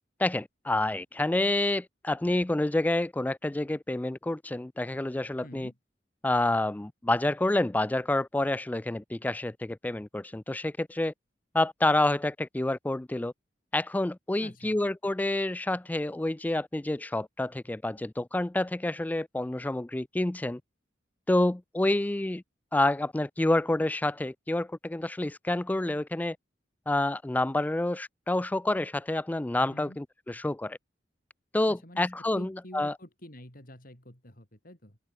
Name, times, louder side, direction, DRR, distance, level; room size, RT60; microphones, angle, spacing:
voice 1, 0.2-5.7 6.2-11.1 11.5-13.3 13.7-20.6 21.3-22.4 22.7-26.4 26.9-30.8 31.5-32.9, left 1 dB, 10° left, 0.3 m, -28 dB
voice 2, 5.4-5.8 14.4-14.8 29.7-30.0 31.7-35.0, left 1 dB, 50° left, 6.7 m, -48 dB
open air
head